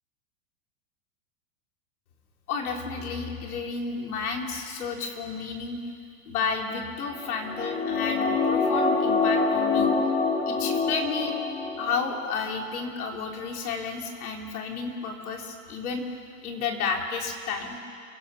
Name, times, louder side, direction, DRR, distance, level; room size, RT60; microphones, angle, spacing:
voice 1, 2.5-5.8 6.3-9.9 10.5-11.3 11.8-16.0 16.4-17.8, left 5 dB, 85° left, 1 dB, 3.6 m, -31 dB
sound 1, 7.1-11.9 12.2-12.3, left 4 dB, 35° left, 5.6 m, -25 dB
29.5 x 17.0 x 5.7 m, 2.2 s
supercardioid pair, 130°, 43 cm